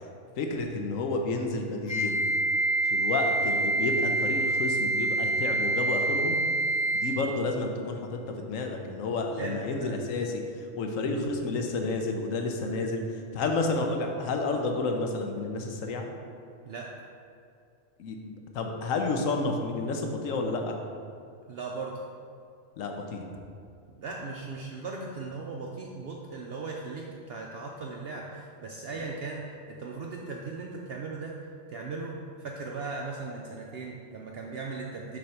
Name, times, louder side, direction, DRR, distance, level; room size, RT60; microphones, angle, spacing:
voice 1, 0.4-2.2 2.9-6.4 6.9-10.4 10.8-13.0 13.3-16.0 18.0-20.8 22.8-23.2, left 3 dB, 90° left, 3 dB, 1.1 m, -30 dB
Wind instrument woodwind instrument, 1.9-7.2, right 2 dB, 15° right, 0.5 m, -26 dB
voice 2, 9.4-9.9 16.7-16.9 21.5-22.0 24.0-31.4 31.7-35.2, right 3 dB, 60° right, -1 dB, 0.7 m, -38 dB
6.9 x 3.1 x 5.6 m, 2.3 s
omnidirectional pair, 1.3 m